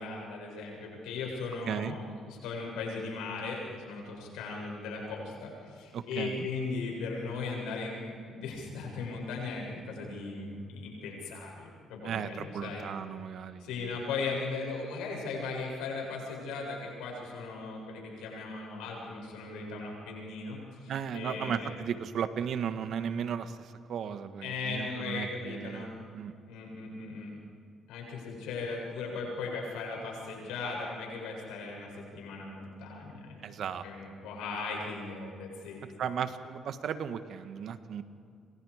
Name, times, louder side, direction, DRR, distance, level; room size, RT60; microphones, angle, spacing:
voice 1, 0.0-2.0 2.3-12.9 13.6-21.7 24.4-25.9 26.5-27.3 27.9-33.4 33.8-35.8, left 4 dB, 85° left, -1 dB, 7.7 m, -38 dB
voice 2, 5.9-6.5 12.0-13.9 20.9-25.9 26.1-26.3 33.4-33.8 36.0-38.0, right 8 dB, 65° right, 10 dB, 1.6 m, -35 dB
30.0 x 25.5 x 5.1 m, 2.4 s
supercardioid pair, 65°, 0 cm